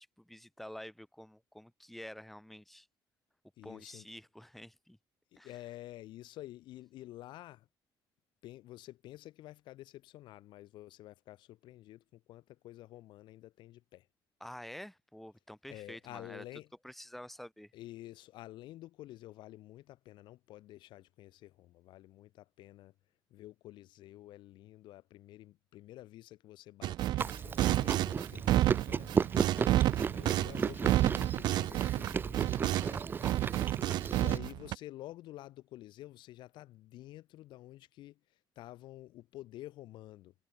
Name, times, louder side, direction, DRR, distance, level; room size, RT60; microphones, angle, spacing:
voice 1, 0.0-2.9 3.6-5.0 5.4-5.5 14.4-16.4 16.8-17.7 29.9-30.3, left 1 dB, ahead, 5.1 m, -49 dB
voice 2, 3.6-4.0 5.3-7.7 8.4-14.1 15.7-16.7 17.7-22.9 23.3-29.3 30.1-33.2 33.9-40.3, left 15 dB, 75° left, 1.2 m, -50 dB
sound 1, 26.8-33.0 33.2-34.7, right 14 dB, 60° right, 0.5 m, -30 dB
Chewing mastication, 27.2-34.4, right 6 dB, 25° right, 0.9 m, -35 dB
cardioid pair, 175°, 8 cm